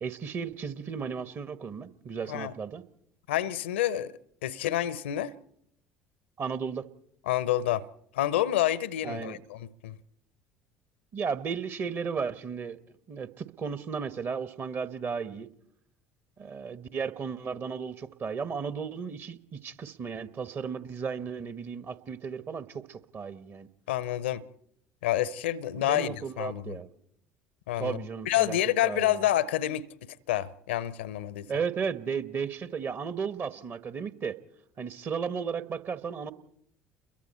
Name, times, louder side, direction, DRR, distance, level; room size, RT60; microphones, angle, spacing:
voice 1, 0.0-2.8 6.4-6.9 9.0-9.4 11.1-15.5 16.4-23.7 25.8-26.9 27.8-29.3 31.5-34.4 34.8-36.3, right 6 dB, 35° right, 1.3 m, -34 dB
voice 2, 3.3-4.1 4.4-5.3 7.3-7.9 8.1-10.0 23.9-24.4 25.0-26.8 27.7-28.0 28.2-31.5, left 13 dB, 70° left, 0.7 m, -28 dB
29.5 x 22.5 x 4.4 m
figure-of-eight pair, 60°, 6 cm